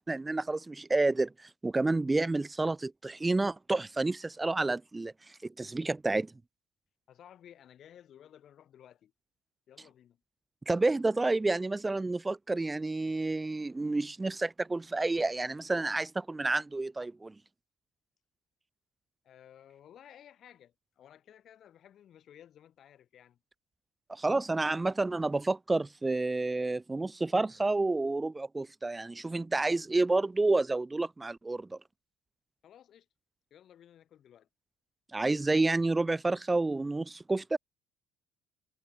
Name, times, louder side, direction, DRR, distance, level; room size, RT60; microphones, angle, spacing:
voice 1, 0.0-5.1 5.6-6.3 10.7-17.3 24.1-31.8 35.1-37.6, right 2 dB, 15° right, 0.4 m, -29 dB
voice 2, 7.1-9.1 9.7-10.2 19.2-23.4 32.6-33.1 33.5-34.5, left 10 dB, 45° left, 4.0 m, -56 dB
figure-of-eight pair, 55°, 0 cm